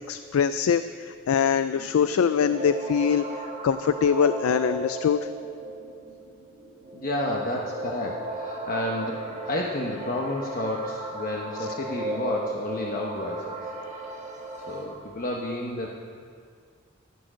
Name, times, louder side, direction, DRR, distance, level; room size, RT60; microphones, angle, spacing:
voice 1, 0.1-3.2 3.6-5.2, left 7 dB, 75° left, 12 dB, 0.4 m, -23 dB
sound 1, 1.6-14.9, right 2 dB, 35° right, 1.7 m, -36 dB
voice 2, 6.9-13.6 14.7-15.9, left 1 dB, 45° left, -1 dB, 1.0 m, -31 dB
14.5 x 9.0 x 6.3 m, 2.1 s
head